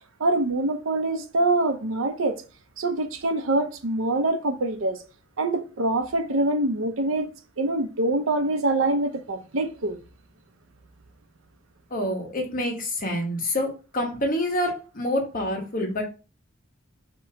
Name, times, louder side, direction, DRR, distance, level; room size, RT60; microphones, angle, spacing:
voice 1, 0.2-2.4 2.8-5.0 5.4-7.3 7.6-10.0, right 2 dB, 80° right, 0.7 m, -24 dB
voice 2, 11.9-16.0, left 1 dB, 40° left, 1.3 m, -27 dB
3.8 x 2.9 x 4.4 m
head